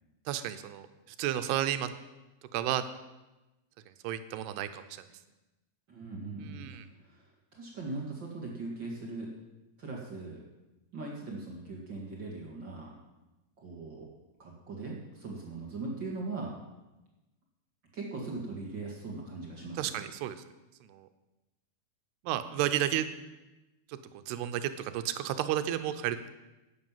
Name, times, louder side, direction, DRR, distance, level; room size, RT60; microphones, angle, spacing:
voice 1, 0.3-0.9 1.2-1.9 2.5-2.8 4.0-5.0 6.4-6.9 19.8-20.4 20.9-21.1 22.2-23.1 23.9-24.0 24.3-26.3, right 11 dB, 90° right, 10 dB, 2.8 m, -32 dB
voice 2, 5.9-9.3 9.8-10.4 10.9-12.9 13.6-14.1 14.4-16.5 17.9-20.0, right 3 dB, 40° right, -2 dB, 1.7 m, -40 dB
11.5 x 8.9 x 7.4 m, 1.0 s
omnidirectional pair, 4.6 m